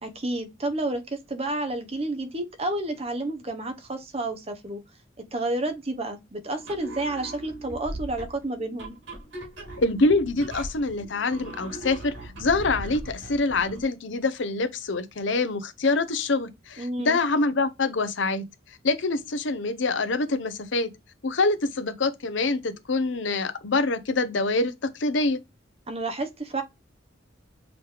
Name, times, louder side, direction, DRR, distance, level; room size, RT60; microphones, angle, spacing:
voice 1, 0.0-4.8 5.3-9.0 16.8-17.2 25.9-26.6, right 2 dB, 30° right, 0.8 m, -30 dB
sound 1, 6.6-13.9, right 1 dB, 80° right, 2.8 m, -39 dB
voice 2, 9.8-18.4 18.8-20.9 21.2-25.4, left 3 dB, 75° left, 0.7 m, -25 dB
5.0 x 3.1 x 3.4 m
head